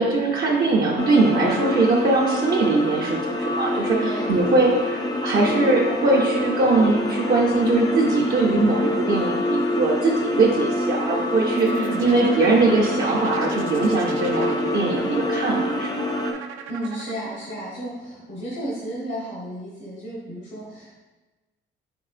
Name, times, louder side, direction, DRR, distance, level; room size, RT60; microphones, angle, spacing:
voice 1, 0.0-11.7 12.0-15.9, right 3 dB, 50° right, -3 dB, 0.7 m, -21 dB
sound 1, 1.0-16.3, left 1 dB, 20° left, 0.4 m, -26 dB
voice 2, 3.9-4.4 11.6-12.1 16.7-21.0, right 1 dB, 60° left, -5 dB, 1.1 m, -32 dB
sound 2, 11.5-17.7, right 8 dB, 85° right, 0.4 m, -38 dB
5.3 x 3.0 x 2.4 m, 1.2 s
cardioid pair, 90°, 20 cm